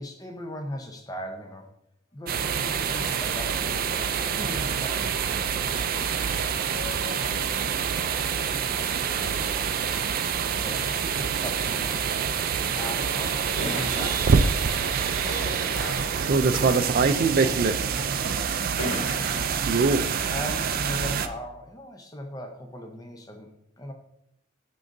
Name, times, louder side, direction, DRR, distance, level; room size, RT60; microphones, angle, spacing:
voice 1, 0.0-1.7 2.1-5.2 10.5-12.1 12.7-14.3 19.1-19.5 19.8-23.5 23.8-23.9, left 1 dB, 20° left, 3 dB, 0.6 m, -38 dB
sound 1, 2.3-21.3, right 6 dB, 45° right, 0.4 m, -26 dB
voice 2, 6.6-9.6 15.2-18.7, left 3 dB, 75° left, 5 dB, 0.8 m, -43 dB
Crash cymbal, 12.5-17.5, right 6 dB, 85° right, 0.7 m, -38 dB
sound 2, 13.6-14.4 15.3-15.4 16.5-17.1 17.9-18.0 18.8-19.5, left 1 dB, 90° left, 2.3 m, -34 dB
11.0 x 3.8 x 2.6 m, 0.75 s
head